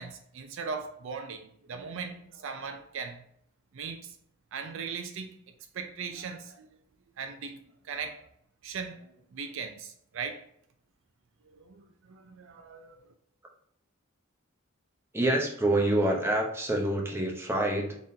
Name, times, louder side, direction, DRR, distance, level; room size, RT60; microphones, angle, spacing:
voice 1, 0.0-3.2 3.7-4.0 4.5-5.3 5.7-6.7 7.2-7.6 7.9-8.2 8.6-9.0 9.3-10.5 11.7-13.0, right 5 dB, 65° right, 0.4 m, -38 dB
voice 2, 15.1-18.0, right 1 dB, 10° right, 0.7 m, -26 dB
4.0 x 3.6 x 2.7 m
head